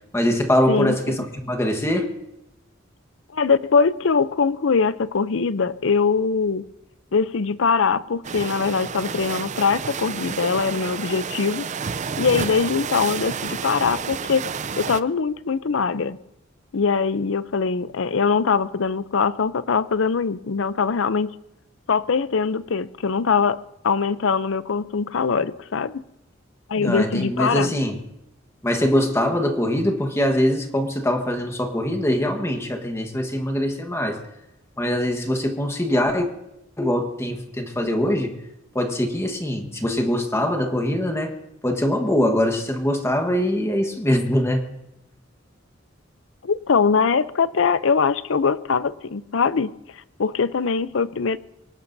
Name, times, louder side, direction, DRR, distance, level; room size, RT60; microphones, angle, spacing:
voice 1, 0.1-2.1 26.7-28.0 28.6-34.2 34.8-36.3 36.8-38.4 38.7-41.3 41.6-44.7, equal, 15° left, 5 dB, 1.3 m, -23 dB
voice 2, 0.7-1.2 3.3-6.6 7.1-11.7 12.2-14.5 14.8-16.2 16.7-21.3 21.9-26.0 26.7-27.7 46.4-49.7 50.2-51.4, left 5 dB, 70° left, 16 dB, 0.6 m, -22 dB
sound 1, 8.2-15.0, right 6 dB, 40° right, 0.5 m, -30 dB
24.0 x 19.0 x 2.7 m, 0.87 s
head